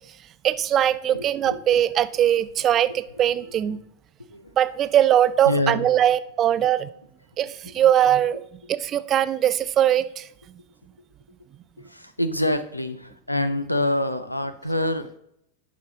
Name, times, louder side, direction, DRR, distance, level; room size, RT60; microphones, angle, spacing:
voice 1, 0.4-3.8 4.6-6.9 7.4-8.4 8.7-10.2, right 11 dB, 30° right, 0.4 m, -21 dB
voice 2, 1.1-1.6 3.7-3.8 4.2-4.5 5.4-5.9 11.8-15.1, left 1 dB, 85° left, 0.6 m, -26 dB
11.0 x 5.3 x 3.7 m
figure-of-eight pair, 90°, 0 cm